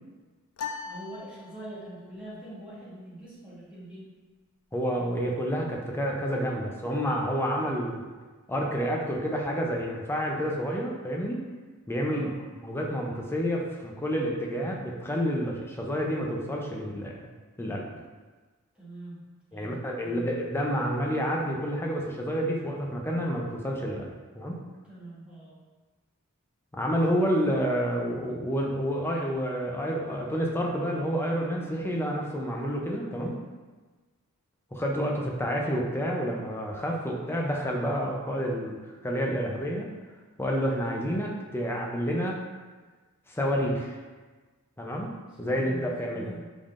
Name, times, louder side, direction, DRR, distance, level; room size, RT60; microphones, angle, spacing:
sound 1, 0.6-2.0, left 6 dB, 70° left, 0.4 m, -39 dB
voice 1, 0.8-4.1 12.1-12.4 18.7-19.2 19.5-20.2 24.9-25.6 45.3-46.4, right 1 dB, 5° right, -10 dB, 1.3 m, -44 dB
voice 2, 4.7-8.1 8.5-11.4 11.9-17.1 17.6-17.9 19.5-24.6 26.7-33.4 34.7-38.8 39.0-39.9 40.4-42.4 43.3-44.0 44.8-45.1 45.4-46.3, equal, 10° left, -1 dB, 0.5 m, -29 dB
5.3 x 3.5 x 2.5 m, 1.3 s
head